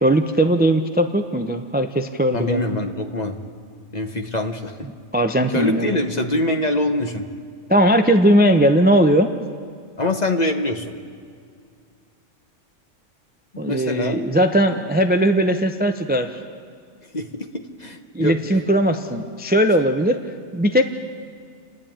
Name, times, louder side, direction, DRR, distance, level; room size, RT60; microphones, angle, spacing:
voice 1, 0.0-2.7 5.1-5.9 7.7-9.3 13.6-16.4 18.1-20.2 20.5-20.8, right 1 dB, 10° right, 7 dB, 0.6 m, -18 dB
voice 2, 2.3-3.4 3.9-4.7 5.5-7.2 10.0-10.9 13.5-14.2 17.1-17.5 17.8-18.6, left 1 dB, 35° left, 5 dB, 1.3 m, -24 dB
30.0 x 11.0 x 8.8 m, 2.2 s
omnidirectional pair, 1.3 m